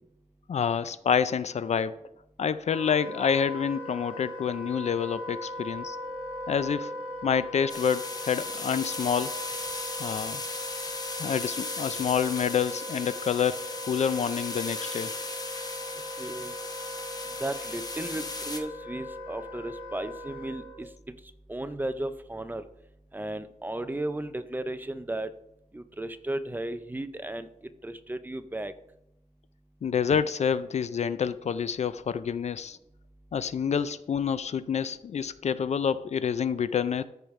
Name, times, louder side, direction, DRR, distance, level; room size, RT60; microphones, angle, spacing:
voice 1, 0.5-2.0 2.4-6.0 6.5-6.9 7.2-9.4 10.0-10.4 11.2-15.1 29.8-32.8 33.3-37.0, left 7 dB, 60° left, 14 dB, 0.4 m, -28 dB
Wind instrument woodwind instrument, 2.7-20.9, left 1 dB, 45° right, 2.3 m, -39 dB
sound 1, 7.7-18.6, left 2 dB, 30° left, 1.0 m, -37 dB
voice 2, 16.2-16.5 17.4-20.9 21.5-22.6 23.1-25.3 25.7-27.5 27.8-28.7, right 1 dB, 15° right, 10 dB, 0.5 m, -34 dB
13.5 x 5.0 x 3.2 m, 0.82 s
wide cardioid pair, 145°, 13 cm